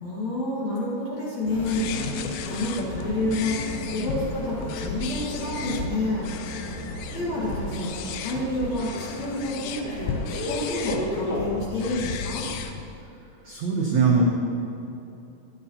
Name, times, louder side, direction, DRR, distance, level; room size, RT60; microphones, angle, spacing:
voice 1, 0.0-1.9 2.5-6.3 7.1-7.9 8.2-12.5, left 1 dB, 55° left, -6 dB, 2.2 m, -29 dB
sound 1, 1.4-8.1, right 1 dB, 40° left, 2.1 m, -38 dB
sound 2, 1.5-12.8, left 6 dB, 85° left, 2.1 m, -35 dB
sound 3, 1.5-11.4, left 1 dB, 70° left, 1.4 m, -36 dB
voice 2, 13.4-14.2, right 5 dB, 85° right, -3 dB, 1.6 m, -21 dB
13.0 x 10.5 x 2.8 m, 2.8 s
omnidirectional pair, 4.8 m